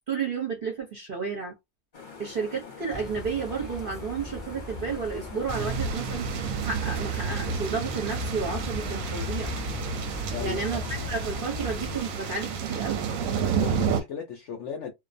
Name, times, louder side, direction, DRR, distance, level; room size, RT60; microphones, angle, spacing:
voice 1, 0.1-1.5 2.2-6.3 6.6-9.5 10.4-13.1, right 5 dB, 50° right, 0.7 m, -32 dB
sound 1, 1.9-12.6, left 5 dB, 40° left, 0.8 m, -45 dB
sound 2, 2.9-12.0, left 2 dB, 15° left, 1.0 m, -38 dB
sound 3, 5.5-14.0, right 6 dB, 70° right, 0.9 m, -30 dB
voice 2, 10.3-10.9 13.6-14.9, left 7 dB, 70° left, 0.7 m, -36 dB
2.5 x 2.2 x 2.5 m
omnidirectional pair, 1.7 m